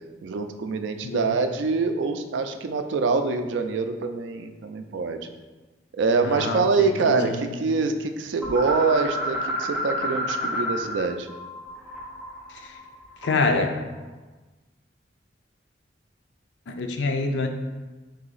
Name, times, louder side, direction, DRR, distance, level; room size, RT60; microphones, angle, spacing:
voice 1, 0.2-5.3 6.0-11.3, right 4 dB, 80° right, 8 dB, 0.3 m, -25 dB
voice 2, 1.0-1.4 6.2-6.6 7.1-7.4 12.6-12.7 13.2-13.7 16.7-17.5, left 3 dB, 70° left, 5 dB, 0.4 m, -26 dB
sound 1, 8.4-11.0 11.3-13.6, equal, 5° right, 0.7 m, -30 dB
3.9 x 2.8 x 3.9 m, 1.2 s
head